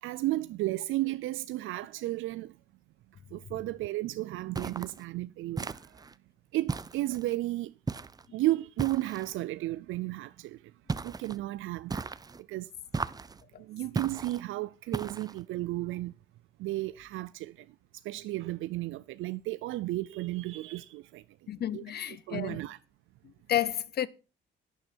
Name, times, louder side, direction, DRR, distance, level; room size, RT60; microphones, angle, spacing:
voice 1, 0.0-2.5 3.3-5.8 6.5-7.7 8.3-10.6 11.0-12.1 12.5-12.7 13.6-16.1 16.6-17.7 18.0-21.2 21.7-21.8 22.1-22.8, right 17 dB, 85° right, 0.4 m, -33 dB
sound 1, 4.5-5.0 5.6-6.1 6.7-7.3 7.9-8.3 8.8-9.3 10.9-11.4 11.9-12.4 12.9-13.4 13.9-14.4 14.9-15.4, right 4 dB, 20° right, 0.5 m, -36 dB
voice 2, 21.5-22.6 23.2-24.1, left 11 dB, 55° left, 0.7 m, -31 dB
11.5 x 9.3 x 4.4 m
cardioid pair, 90°, 20 cm